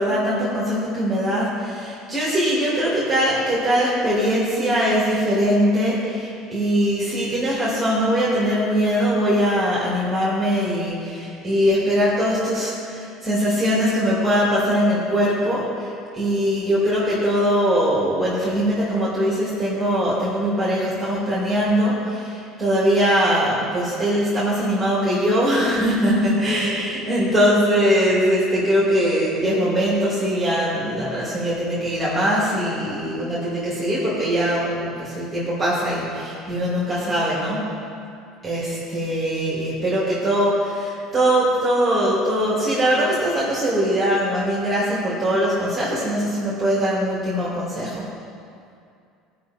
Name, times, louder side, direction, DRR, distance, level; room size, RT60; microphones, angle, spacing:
voice 1, 0.0-15.9 16.1-37.7 38.4-48.1, equal, 10° right, -8 dB, 2.2 m, -21 dB
16.0 x 5.6 x 4.3 m, 2.5 s
cardioid pair, 130°, 0 cm